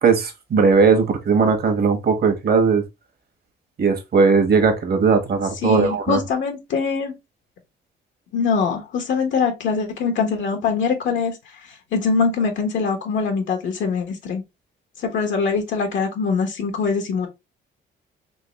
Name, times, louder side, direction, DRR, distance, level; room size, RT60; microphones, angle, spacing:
voice 1, 0.0-2.8 3.8-6.2, right 5 dB, 50° right, 1.3 m, -18 dB
voice 2, 5.6-7.1 8.3-14.4 15.0-17.3, left 5 dB, 70° left, 1.2 m, -23 dB
3.8 x 3.1 x 2.9 m
cardioid pair, 90°, 20 cm